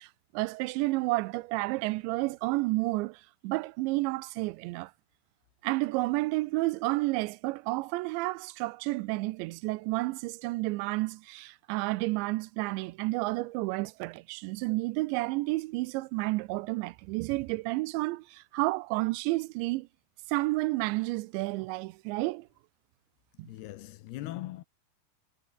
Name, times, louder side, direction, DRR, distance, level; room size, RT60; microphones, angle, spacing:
voice 1, 0.0-4.9 5.6-19.9 20.3-22.5 23.4-23.5, right 22 dB, 90° right, 2.9 m, -31 dB
voice 2, 23.4-24.6, left 15 dB, 75° left, 2.7 m, -40 dB
omnidirectional pair, 5.1 m